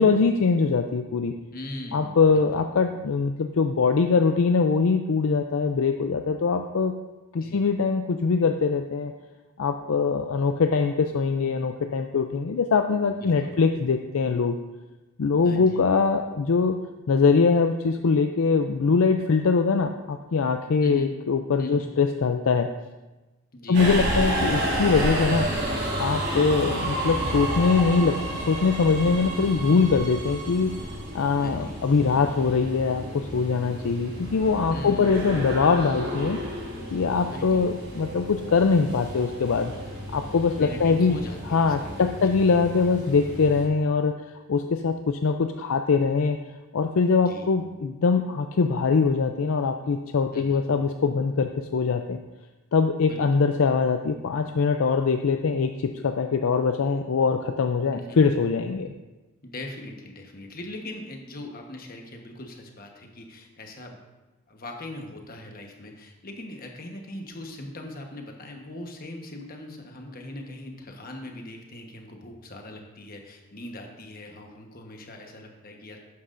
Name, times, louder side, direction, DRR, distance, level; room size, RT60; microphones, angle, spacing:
voice 1, 0.0-1.3 1.9-6.9 7.3-9.1 9.6-14.6 15.2-16.8 17.1-22.7 23.7-25.5 26.0-28.2 28.5-30.7 31.1-36.4 36.9-39.7 40.1-41.2 41.5-44.2 44.5-46.4 46.7-52.2 52.7-58.9, left 4 dB, 65° left, 6 dB, 0.4 m, -22 dB
voice 2, 1.5-2.4 7.4-7.6 13.2-13.6 15.4-15.8 20.8-21.2 21.6-21.9 23.5-23.9 31.4-31.8 34.7-35.3 37.3-37.7 40.6-42.4 47.2-47.5 50.3-50.6 53.1-53.4 57.9-58.2 59.4-64.0 64.5-76.0, left 1 dB, 40° left, 2 dB, 1.2 m, -40 dB
Subway metro underground, 23.7-43.6, right 1 dB, 50° right, 3.2 m, -31 dB
sound 1, 34.4-41.2, right 2 dB, 65° right, 1.2 m, -45 dB
11.5 x 9.5 x 2.6 m, 1.1 s
head